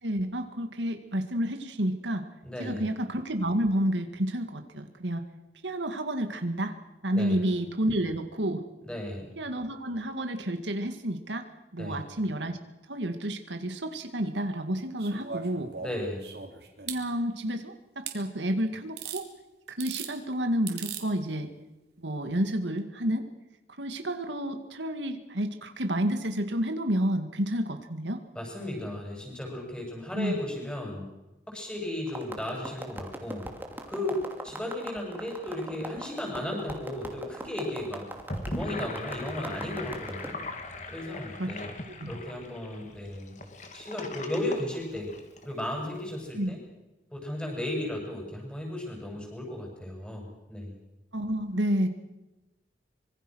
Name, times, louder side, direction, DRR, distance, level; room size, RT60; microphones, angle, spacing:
voice 1, 0.0-2.2 2.6-5.2 5.6-6.7 7.0-8.6 9.4-11.5 11.7-12.6 12.9-15.7 16.9-19.3 19.7-21.5 22.0-23.3 23.8-28.2 30.1-30.4 41.4-41.5 42.0-42.1 46.3-46.5 51.1-51.9, right 1 dB, 90° right, 6 dB, 2.2 m, -30 dB
voice 2, 2.4-2.9 7.1-7.4 8.8-9.3 11.8-12.0 15.8-16.2 28.4-31.1 31.5-33.5 33.9-38.0 38.5-40.3 40.9-41.7 42.1-43.4 43.7-45.1 45.4-46.6 47.1-50.8, left 1 dB, 5° left, 0 dB, 7.2 m, -35 dB
sound 1, 15.0-17.0 18.1-18.2 19.0-19.2 19.7-20.1 20.7-21.0 22.3-22.4, right 7 dB, 65° right, 3.2 m, -38 dB
sound 2, 32.1-40.3, right 1 dB, 10° right, 2.7 m, -41 dB
Gurgling / Sink (filling or washing), 38.1-45.6, left 2 dB, 40° left, 2.8 m, -39 dB
25.0 x 23.5 x 6.4 m, 1.0 s
head